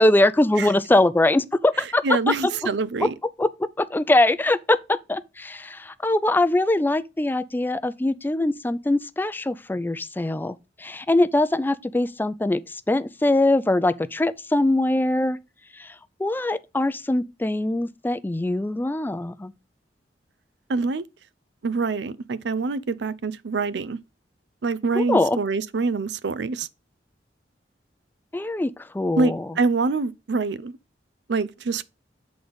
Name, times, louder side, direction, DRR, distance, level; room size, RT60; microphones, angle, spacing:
voice 1, 0.0-2.0 3.4-3.5 3.8-12.6 12.9-15.4 15.8-15.9 16.2-19.5 24.9-25.4 28.3-29.5, left 2 dB, 10° left, 0.4 m, -22 dB
voice 2, 2.0-3.1 20.7-21.0 21.6-24.0 24.6-26.7 29.2-30.8 31.3-31.8, right 4 dB, 75° right, 0.5 m, -25 dB
7.8 x 3.9 x 5.1 m
head